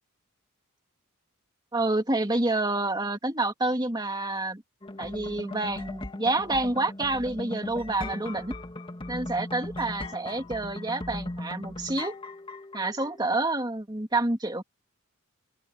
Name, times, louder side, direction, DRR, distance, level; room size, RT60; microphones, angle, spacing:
voice 1, 1.7-4.6 5.0-8.5 9.1-12.2 12.7-14.6, right 2 dB, 20° right, 2.5 m, -28 dB
sound 1, 4.8-13.3, left 1 dB, 25° left, 2.1 m, -38 dB
open air
head